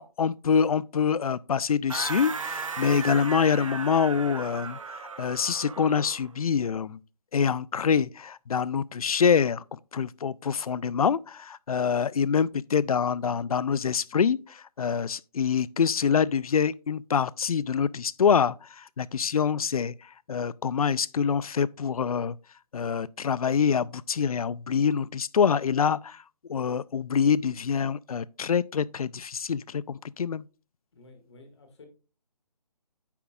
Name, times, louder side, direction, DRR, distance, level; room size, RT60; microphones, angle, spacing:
voice 1, 0.0-4.8 5.2-7.0 7.3-19.9 20.3-22.4 22.7-26.2 26.5-30.4, left 6 dB, 60° left, 0.4 m, -25 dB
sound 1, 1.9-6.3, right 5 dB, 50° right, 0.9 m, -36 dB
voice 2, 30.9-31.9, left 3 dB, 40° left, 1.9 m, -52 dB
9.2 x 6.9 x 2.4 m
hypercardioid pair, 170°, 21 cm